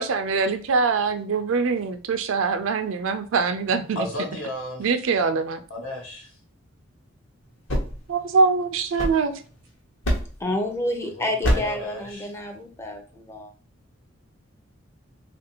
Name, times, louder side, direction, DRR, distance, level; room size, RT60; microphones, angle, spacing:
voice 1, 0.0-4.1 4.8-5.6 8.1-9.3, right 4 dB, 70° right, 0.4 m, -23 dB
voice 2, 3.9-4.9 5.7-6.3 11.2-12.3, left 1 dB, 85° left, 1.2 m, -33 dB
sound 1, 7.4-9.6 10.0-10.5 11.4-11.9, equal, 65° left, 0.8 m, -27 dB
voice 3, 10.4-13.5, left 1 dB, 15° left, 0.4 m, -29 dB
3.2 x 2.5 x 2.8 m
head